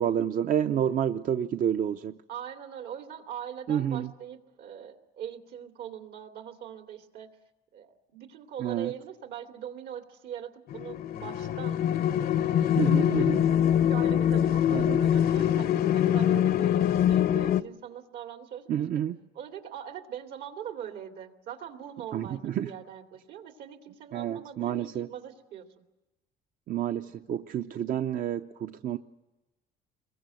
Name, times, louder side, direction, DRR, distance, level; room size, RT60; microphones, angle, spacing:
voice 1, 0.0-2.2 3.7-4.1 8.6-8.9 12.8-13.4 14.7-15.0 18.7-19.2 22.1-22.7 24.1-25.1 26.7-29.0, right 9 dB, 55° right, 8 dB, 0.8 m, -29 dB
voice 2, 2.3-7.3 7.7-11.8 12.4-13.3 13.8-19.0 19.3-25.6, right 9 dB, 75° right, 5 dB, 2.9 m, -42 dB
sound 1, 10.7-17.6, left 10 dB, 60° left, 0.8 m, -24 dB
27.0 x 22.5 x 7.8 m, 1.0 s
cardioid pair, 110°, 17 cm